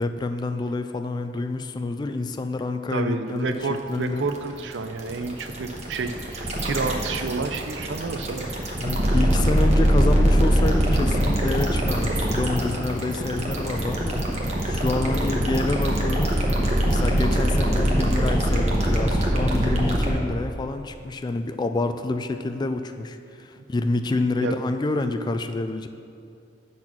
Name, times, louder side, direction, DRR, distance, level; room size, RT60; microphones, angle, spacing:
voice 1, 0.0-3.6 3.9-4.3 8.8-14.2 14.6-16.4 16.8-25.9, left 2 dB, 25° left, 8 dB, 0.3 m, -28 dB
voice 2, 2.9-8.5 23.6-23.7 24.4-24.6, right 4 dB, 80° right, 8 dB, 0.5 m, -30 dB
sound 1, 3.5-20.1, equal, 40° right, 1.1 m, -22 dB
8.6 x 4.1 x 6.0 m, 2.5 s
head